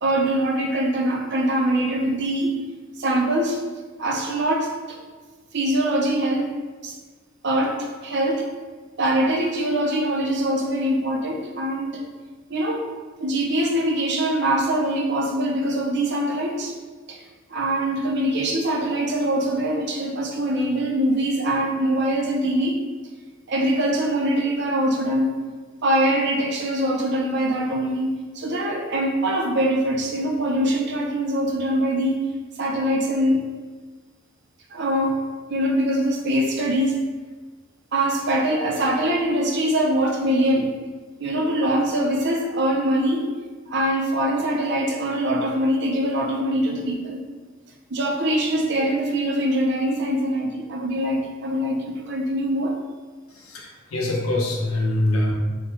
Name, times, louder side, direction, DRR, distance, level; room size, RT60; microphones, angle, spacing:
voice 1, 0.0-2.6 3.0-3.6 4.0-5.0 5.5-6.5 6.8-6.9 7.4-8.5 9.0-12.0 12.5-12.9 13.2-16.7 17.1-17.2 17.5-22.8 23.5-25.3 25.8-32.2 32.6-33.5 34.7-37.1 37.9-40.7 41.2-43.3 43.7-47.2 47.9-52.7, right 1 dB, 55° right, 1 dB, 0.6 m, -23 dB
voice 2, 53.3-55.3, left 1 dB, 90° left, -1 dB, 0.8 m, -24 dB
3.5 x 2.2 x 4.4 m, 1.4 s
head